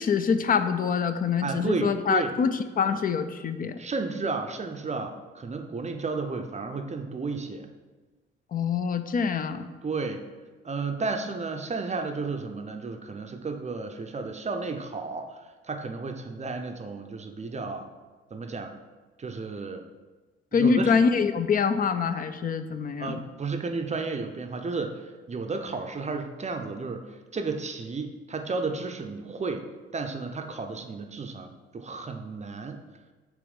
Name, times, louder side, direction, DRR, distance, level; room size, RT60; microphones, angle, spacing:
voice 1, 0.0-3.8 8.5-9.7 20.5-23.2, left 5 dB, 30° left, 10 dB, 0.5 m, -25 dB
voice 2, 1.4-2.3 3.8-7.7 9.8-10.2 10.6-17.9 18.3-18.7 19.2-19.8 20.5-20.9 23.0-29.6 29.9-32.8, right 4 dB, 25° right, 5 dB, 0.6 m, -33 dB
6.9 x 3.1 x 5.3 m, 1.3 s
figure-of-eight pair, 45°, 30 cm